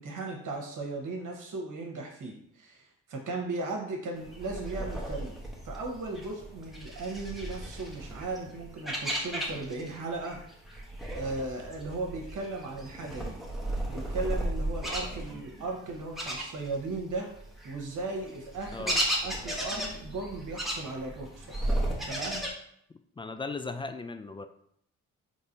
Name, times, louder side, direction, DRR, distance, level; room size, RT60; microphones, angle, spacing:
voice 1, 0.0-5.3 5.6-10.4 11.1-13.4 13.9-17.3 17.6-21.6 22.1-22.5, right 3 dB, 65° right, 1 dB, 1.2 m, -37 dB
sound 1, 4.2-10.0 10.2-17.0 17.4-22.5, right 1 dB, ahead, 1.1 m, -35 dB
voice 2, 23.2-24.5, left 3 dB, 15° left, 8 dB, 0.3 m, -37 dB
4.1 x 3.4 x 2.7 m, 0.69 s
supercardioid pair, 50°, 34 cm